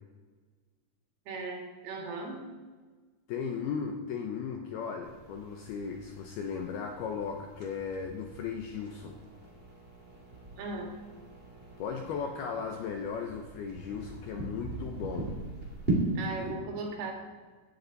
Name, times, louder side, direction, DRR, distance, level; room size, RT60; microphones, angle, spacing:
voice 1, 1.3-2.5 10.6-10.9 16.2-17.1, right 3 dB, 85° right, 2 dB, 4.7 m, -37 dB
voice 2, 3.3-9.2 11.8-15.4, left 6 dB, 80° left, 4 dB, 2.3 m, -36 dB
sound 1, 5.0-16.5, right 2 dB, 20° right, 1.6 m, -39 dB
17.0 x 11.5 x 4.1 m, 1.4 s
omnidirectional pair, 5.6 m